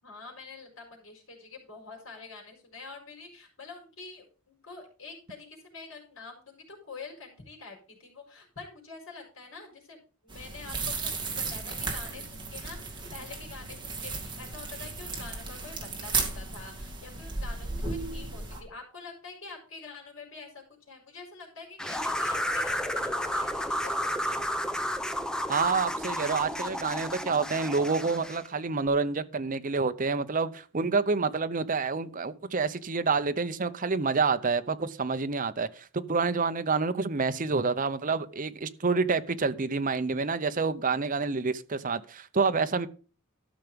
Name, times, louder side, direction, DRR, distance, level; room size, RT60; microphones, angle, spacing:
voice 1, 0.0-24.4, left 4 dB, 70° left, 4.6 m, -46 dB
sound 1, 10.3-18.6, right 4 dB, 20° right, 2.5 m, -35 dB
sound 2, 21.8-28.5, equal, 5° left, 0.7 m, -32 dB
voice 2, 25.5-42.9, right 4 dB, 40° right, 0.7 m, -28 dB
13.0 x 5.9 x 5.2 m
head